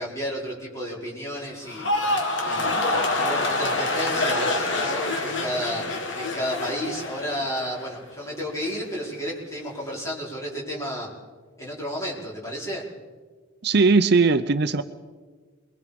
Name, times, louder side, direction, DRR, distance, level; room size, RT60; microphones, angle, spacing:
voice 1, 0.0-2.1 2.4-11.1 11.6-12.8, equal, 15° left, -4 dB, 5.1 m, -32 dB
sound 1, 1.6-8.0 8.3-8.8, left 2 dB, 60° left, 2.4 m, -26 dB
voice 2, 13.6-14.8, right 4 dB, 50° right, 11 dB, 0.7 m, -19 dB
27.5 x 22.0 x 5.2 m, 1.4 s
head